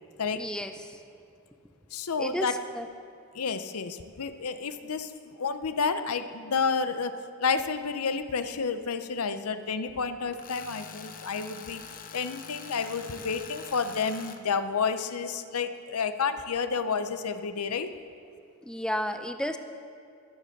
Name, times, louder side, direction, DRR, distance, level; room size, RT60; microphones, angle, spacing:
voice 1, 0.3-1.0 2.2-2.9 18.6-19.6, equal, 5° left, 7 dB, 0.5 m, -33 dB
voice 2, 1.9-2.5 3.3-7.1 7.4-11.8 12.1-17.9, left 5 dB, 80° left, 10 dB, 0.7 m, -30 dB
Tools, 10.3-14.4, left 6 dB, 40° left, 0.8 m, -44 dB
21.5 x 7.6 x 6.6 m, 2.4 s
head